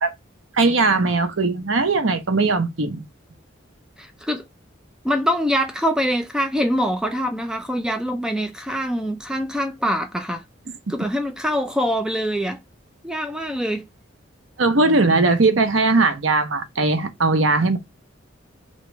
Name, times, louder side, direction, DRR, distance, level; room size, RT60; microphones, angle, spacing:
voice 1, 0.5-3.0 14.6-17.8, right 3 dB, 80° right, 0.8 m, -19 dB
voice 2, 4.0-4.4 5.0-10.4 10.9-12.6 13.0-13.9, equal, 5° right, 0.4 m, -24 dB
3.1 x 2.9 x 4.5 m
head